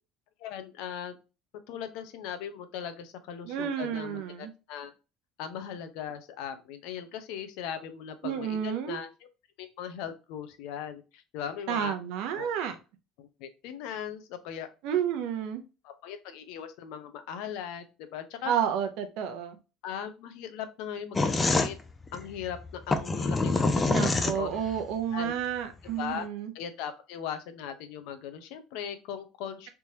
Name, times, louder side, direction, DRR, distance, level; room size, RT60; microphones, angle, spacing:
voice 1, 0.4-1.2 1.7-4.9 5.4-9.1 9.6-11.9 12.3-12.5 13.2-14.7 15.8-18.5 19.8-21.8 22.1-24.5 25.1-25.3 25.8-26.3 26.5-29.7, left 8 dB, 70° left, 9 dB, 0.6 m, -39 dB
voice 2, 3.5-4.5 8.2-9.0 11.7-12.8 14.8-15.6 18.4-19.6 23.9-26.5, right 8 dB, 65° right, 8 dB, 0.7 m, -31 dB
sound 1, 21.1-24.8, left 3 dB, 15° left, 0.3 m, -26 dB
3.4 x 3.0 x 2.7 m, 0.30 s
cardioid pair, 165°, 0 cm